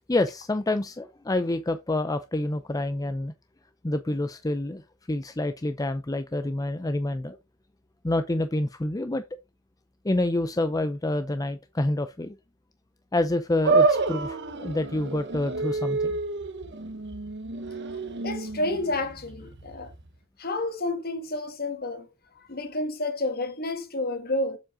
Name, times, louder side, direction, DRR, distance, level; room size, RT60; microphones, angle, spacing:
voice 1, 0.1-3.3 3.8-4.8 5.1-7.4 8.0-9.2 10.0-12.4 13.1-16.2, left 1 dB, 15° left, 0.6 m, -27 dB
sound 1, 13.6-20.1, right 3 dB, 55° right, 1.2 m, -28 dB
voice 2, 18.2-19.9 20.4-22.1 22.5-24.6, left 2 dB, 45° left, 1.8 m, -30 dB
7.6 x 7.3 x 3.8 m
head